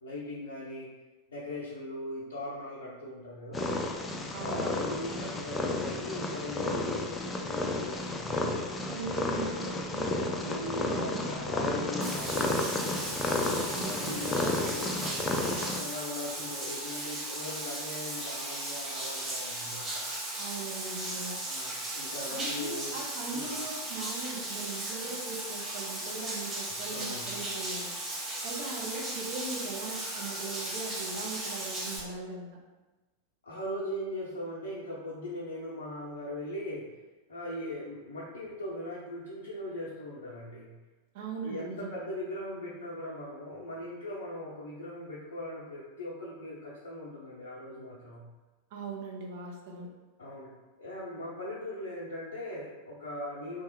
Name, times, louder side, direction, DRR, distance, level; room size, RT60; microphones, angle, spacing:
voice 1, 0.0-0.9 1.3-3.7 4.4-8.7 10.4-13.0 13.7-20.0 21.4-23.0 23.3-23.5 26.7-27.4 33.4-36.8 37.3-40.7 41.4-48.3 50.2-50.5 50.8-53.6, left 1 dB, 70° left, -7 dB, 0.5 m, -40 dB
Purr, 3.5-15.8, left 2 dB, 15° left, 0.3 m, -32 dB
voice 2, 4.3-4.7 8.9-11.2 11.8-11.9 13.7-14.2 20.4-21.4 22.3-27.9 28.4-32.5 41.1-42.0 48.7-49.9, right 3 dB, 50° right, 0 dB, 0.6 m, -40 dB
Bathtub (filling or washing), 12.0-32.0, right 1 dB, 15° right, 0.7 m, -36 dB
3.1 x 2.2 x 2.9 m, 1.2 s
figure-of-eight pair, 90°, 0 cm